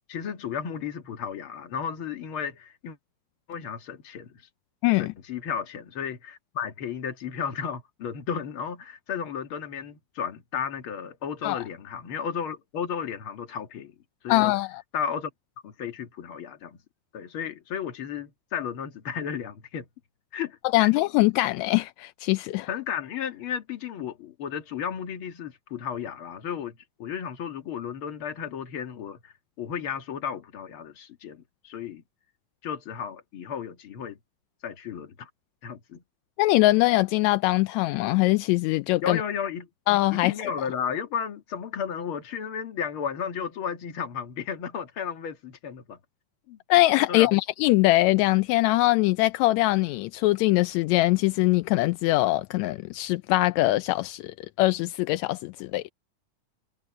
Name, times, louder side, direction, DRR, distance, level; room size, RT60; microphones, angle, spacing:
voice 1, 0.1-3.0 3.5-4.5 5.0-14.0 14.2-14.5 14.9-15.3 15.6-16.8 17.1-19.9 20.3-20.9 22.7-32.0 32.6-34.2 34.6-35.3 35.6-36.0 39.0-39.7 40.2-46.0 46.5-46.6 47.1-47.3, left 7 dB, 45° left, 2.2 m, -33 dB
voice 2, 14.3-14.7 20.7-22.7 36.4-39.2 39.9-40.5 46.7-55.9, left 19 dB, 85° left, 1.6 m, -22 dB
omnidirectional pair, 3.7 m